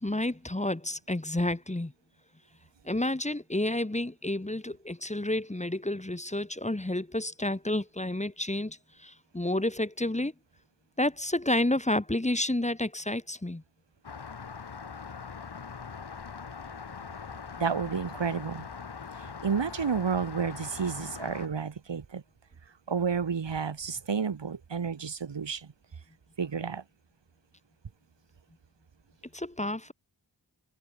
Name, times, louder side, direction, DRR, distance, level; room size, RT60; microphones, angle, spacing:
voice 1, 0.0-1.9 2.8-10.3 11.0-13.6 29.3-29.9, left 1 dB, 15° left, 1.5 m, -30 dB
Rain, 14.0-21.5, left 5 dB, 65° left, 1.5 m, -42 dB
voice 2, 17.6-18.7 19.1-22.2 22.9-25.7 26.4-26.8, right 6 dB, 85° right, 1.7 m, -31 dB
wide cardioid pair, 55°, 42 cm